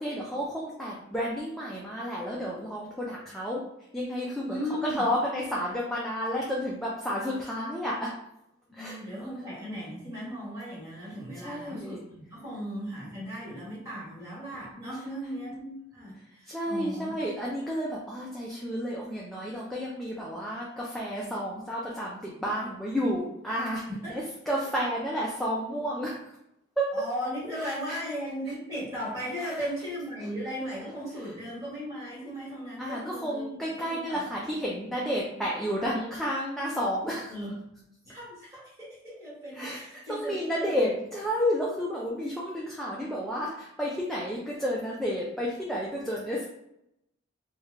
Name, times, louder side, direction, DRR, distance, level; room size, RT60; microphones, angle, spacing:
voice 1, 0.0-3.6 3.9-4.6 5.0-8.1 8.7-9.0 11.4-12.0 16.5-23.8 24.1-26.1 26.8-26.9 27.6-28.0 29.4-29.5 32.8-37.3 39.5-46.5, equal, ahead, -5 dB, 0.3 m, -31 dB
voice 2, 4.5-5.0 8.7-17.2 23.9-24.2 26.9-33.4 33.8-34.7 35.3-35.4 37.3-37.5 38.0-41.0, equal, 15° right, -8 dB, 1.5 m, -37 dB
3.1 x 2.3 x 3.2 m, 0.81 s
head